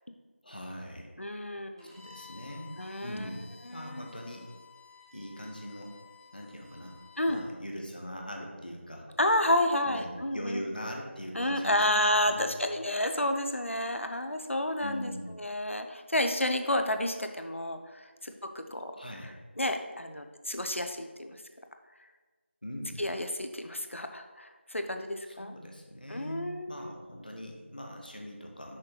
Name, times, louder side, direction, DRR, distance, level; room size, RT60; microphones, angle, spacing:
voice 1, 0.4-1.1 1.8-4.5 5.1-6.0 6.3-7.0 7.3-9.1 9.8-12.5 14.8-15.3 18.9-19.3 22.6-23.0 25.3-28.8, equal, 45° left, 1 dB, 1.1 m, -41 dB
voice 2, 1.2-1.9 2.8-3.3 3.7-4.1 7.2-7.4 9.2-10.6 11.3-18.9 19.6-21.3 23.0-25.5 26.1-26.9, left 1 dB, 75° left, 7 dB, 0.7 m, -30 dB
Bowed string instrument, 1.8-7.5, left 6 dB, 20° right, 0.8 m, -54 dB
6.5 x 3.2 x 5.6 m, 1.3 s
figure-of-eight pair, 180°, 7 cm